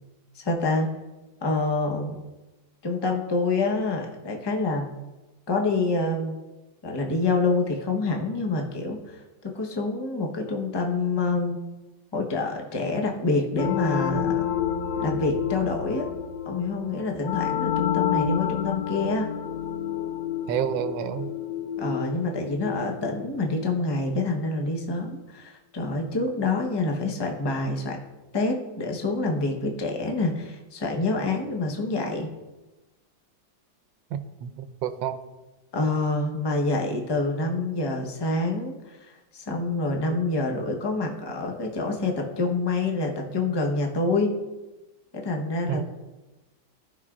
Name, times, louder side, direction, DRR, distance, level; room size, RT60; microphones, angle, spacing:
voice 1, 0.3-0.9 1.4-2.2 2.8-4.9 5.5-6.4 6.8-11.6 12.1-14.4 15.0-16.1 16.5-19.3 21.8-28.0 28.3-32.3 35.7-44.3 45.1-45.8, left 3 dB, 25° left, 1 dB, 0.5 m, -27 dB
sound 1, 13.5-24.0, left 8 dB, 80° left, 1.3 m, -29 dB
voice 2, 20.5-21.3 34.1-35.2 45.7-45.8, right 9 dB, 90° right, 11 dB, 1.3 m, -29 dB
15.0 x 5.6 x 2.4 m, 1.1 s
omnidirectional pair, 2.0 m